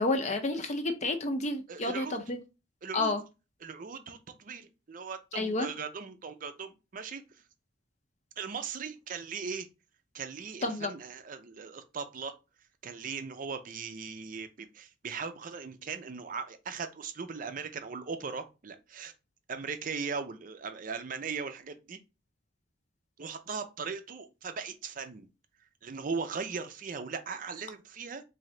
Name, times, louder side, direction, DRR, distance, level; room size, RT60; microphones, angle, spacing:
voice 1, 0.0-2.4 2.9-3.2 5.3-5.7 10.6-10.9, left 2 dB, 35° left, 0.6 m, -30 dB
voice 2, 1.7-2.2 2.8-3.1 3.6-7.4 8.4-9.7 10.1-12.3 12.8-19.1 19.5-22.0 23.2-25.3 25.8-28.2, right 5 dB, 45° right, 0.5 m, -39 dB
3.8 x 2.7 x 3.2 m
head